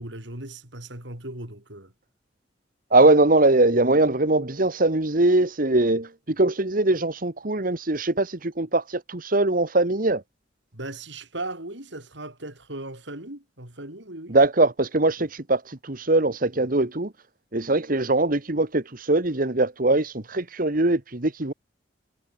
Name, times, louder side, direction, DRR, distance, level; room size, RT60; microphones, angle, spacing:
voice 1, 0.0-1.9 10.7-14.4, right 2 dB, 70° right, 6.0 m, -37 dB
voice 2, 2.9-10.2 14.3-17.1 17.5-21.5, right 2 dB, 45° right, 1.6 m, -21 dB
head